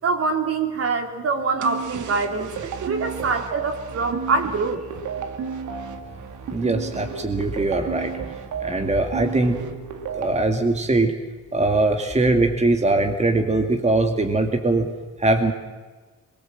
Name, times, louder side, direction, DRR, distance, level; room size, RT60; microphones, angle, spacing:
voice 1, 0.0-4.8, right 4 dB, 50° right, 4 dB, 3.4 m, -24 dB
sound 1, 1.6-10.4, right 5 dB, 75° right, 2.1 m, -33 dB
voice 2, 6.5-8.1 8.6-9.6 10.1-11.1 11.5-14.9 15.2-15.5, right 2 dB, 20° right, 4 dB, 2.2 m, -21 dB
24.0 x 22.0 x 7.7 m, 1.3 s
cardioid pair, 90°, 30 cm